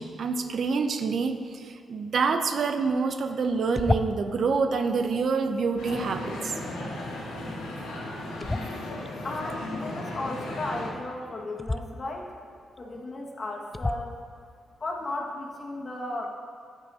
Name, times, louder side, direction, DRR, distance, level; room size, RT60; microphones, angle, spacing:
voice 1, 0.0-6.5, right 4 dB, 60° right, 7 dB, 0.6 m, -27 dB
sound 1, 3.7-4.4 8.4-9.1 11.6-11.8 12.8-12.9 13.7-14.2, left 2 dB, 20° left, 0.4 m, -29 dB
sound 2, 5.8-10.9, left 1 dB, 80° left, 1.4 m, -36 dB
voice 2, 9.2-12.3 12.8-14.2 14.8-16.3, left 2 dB, 45° left, -1 dB, 1.6 m, -35 dB
9.9 x 9.3 x 2.7 m, 2.3 s
hypercardioid pair, 40°, 0 cm